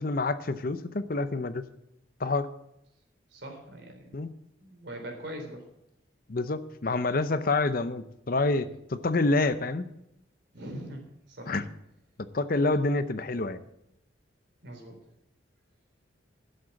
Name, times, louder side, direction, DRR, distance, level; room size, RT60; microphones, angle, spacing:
voice 1, 0.0-1.6 2.2-2.5 4.1-4.3 6.3-9.8 11.5-11.6 12.3-13.6, left 2 dB, 50° left, 12 dB, 0.7 m, -27 dB
voice 2, 3.3-4.2 4.6-5.6 10.5-11.0 11.3-11.5 14.6-15.0, right 1 dB, 65° right, 2 dB, 3.8 m, -41 dB
11.5 x 7.8 x 7.2 m, 0.81 s
head